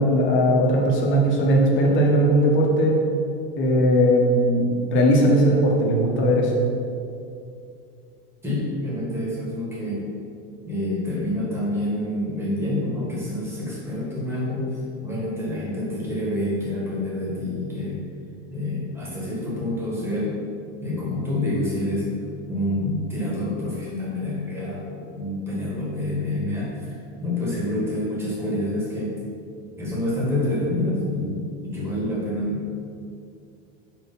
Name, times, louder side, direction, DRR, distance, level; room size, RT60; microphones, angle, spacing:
voice 1, 0.0-3.0 3.6-6.5, equal, 35° left, -1 dB, 1.2 m, -19 dB
voice 2, 8.4-10.1 10.6-18.0 18.5-20.3 20.8-22.1 22.5-29.1 29.8-32.8, left 1 dB, 5° right, -6 dB, 1.6 m, -27 dB
4.7 x 4.7 x 5.5 m, 2.5 s
supercardioid pair, 155°, 33 cm